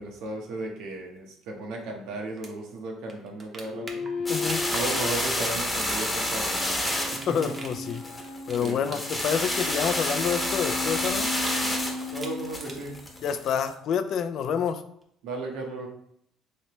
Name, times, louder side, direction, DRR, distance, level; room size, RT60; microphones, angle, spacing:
voice 1, 0.0-4.0 4.7-6.9 7.1-7.4 8.6-8.9 12.1-13.0 15.2-15.9, right 2 dB, 75° right, 1 dB, 0.8 m, -35 dB
sound 1, 2.4-2.5 2.8-2.9 3.1-9.6 9.9-11.8 12.0-13.0 15.0-15.1, right 3 dB, 35° right, 0.7 m, -41 dB
sound 2, 3.6-13.3, left 4 dB, 85° left, 0.9 m, -36 dB
sound 3, 4.2-13.7, left 1 dB, 15° left, 0.9 m, -29 dB
voice 2, 4.3-4.7 7.3-8.0 8.5-11.3 13.2-14.8, left 7 dB, 60° left, 10 dB, 0.3 m, -28 dB
3.2 x 3.2 x 3.0 m, 0.71 s
supercardioid pair, 90°, 0 cm